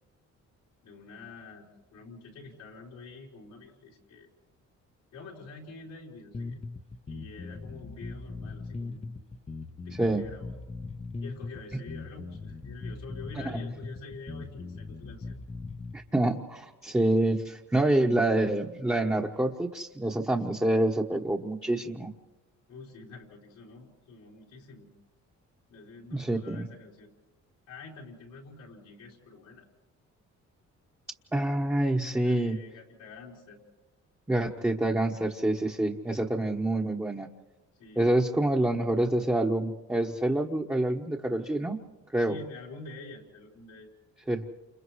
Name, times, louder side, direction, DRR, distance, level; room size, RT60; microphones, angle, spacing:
voice 1, 0.8-4.3 5.1-6.6 7.1-9.4 9.7-10.5 11.2-15.4 22.7-24.9 25.7-27.1 27.7-29.7 32.1-33.6 37.8-38.1 42.3-43.9, left 3 dB, 90° left, -3 dB, 4.0 m, -47 dB
sound 1, 6.3-15.9, left 3 dB, 20° left, 0.8 m, -40 dB
voice 2, 15.9-22.1 26.1-26.7 31.3-32.6 34.3-37.3 38.0-41.8 42.1-42.4 44.3-44.5, right 1 dB, 10° right, -1 dB, 1.3 m, -27 dB
29.0 x 28.0 x 3.2 m, 1.1 s
cardioid pair, 90°, 30 cm